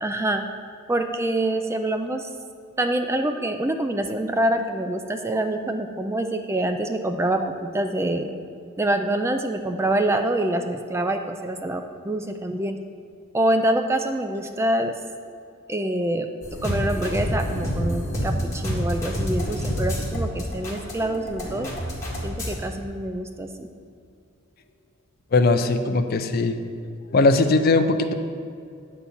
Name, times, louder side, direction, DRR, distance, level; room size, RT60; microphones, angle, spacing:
voice 1, 0.0-0.4 0.9-2.3 2.8-8.3 8.8-12.8 13.3-14.9 15.7-16.3 16.6-21.7 22.2-23.7, right 1 dB, 10° right, 6 dB, 0.3 m, -25 dB
sound 1, 16.4-22.6, equal, 15° left, 1.7 m, -28 dB
voice 2, 25.3-26.6 27.1-28.1, left 3 dB, 45° left, 8 dB, 0.5 m, -19 dB
9.1 x 4.3 x 7.0 m, 2.4 s
head